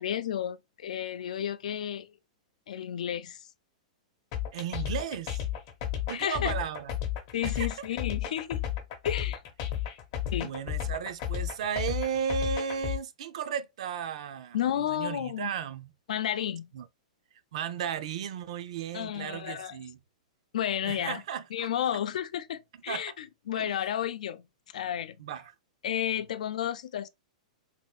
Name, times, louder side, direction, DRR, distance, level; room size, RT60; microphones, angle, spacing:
voice 1, 0.0-2.2 2.7-3.5 6.1-6.6 7.3-8.6 9.0-9.4 10.3-10.5 14.5-15.5 16.1-16.7 18.9-19.8 20.5-21.2 21.5-24.5 24.7-25.2 25.8-27.1, left 10 dB, 75° left, 0.4 m, -32 dB
sound 1, 4.3-13.0, left 11 dB, 35° left, 0.7 m, -32 dB
voice 2, 4.5-5.4 6.1-6.9 7.4-7.9 10.3-15.9 16.7-16.9 17.5-20.0 20.8-21.7 22.9-23.0 23.6-23.8 25.2-25.5, right 7 dB, 55° right, 0.4 m, -35 dB
3.5 x 3.3 x 2.2 m
supercardioid pair, 170°, 4 cm